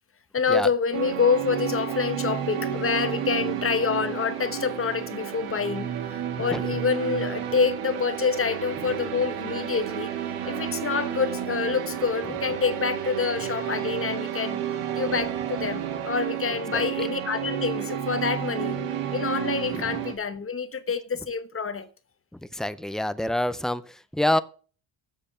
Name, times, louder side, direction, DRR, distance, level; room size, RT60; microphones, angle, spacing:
voice 1, 0.3-10.1 10.4-14.6 14.9-18.8 19.1-21.9, left 5 dB, 25° left, 1.0 m, -27 dB
sound 1, 0.9-20.1, right 9 dB, 85° right, 2.3 m, -31 dB
voice 2, 6.4-6.7 16.7-16.8 19.7-19.9 22.5-24.4, left 1 dB, ahead, 0.4 m, -27 dB
7.7 x 6.8 x 6.5 m
cardioid pair, 130°, 50 cm